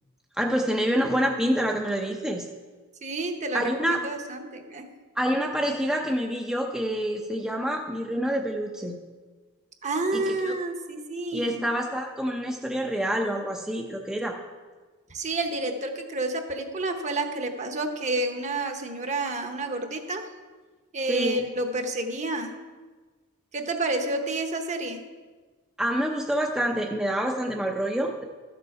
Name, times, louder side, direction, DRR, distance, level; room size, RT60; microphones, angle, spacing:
voice 1, 0.4-2.5 3.5-4.0 5.2-9.0 10.1-10.5 11.3-14.4 21.1-21.4 25.8-28.2, equal, 5° right, 0 dB, 0.6 m, -27 dB
voice 2, 3.0-4.9 9.8-11.6 15.1-20.3 20.9-22.5 23.5-25.0, right 2 dB, 35° right, 6 dB, 0.9 m, -29 dB
13.0 x 6.9 x 4.8 m, 1.4 s
head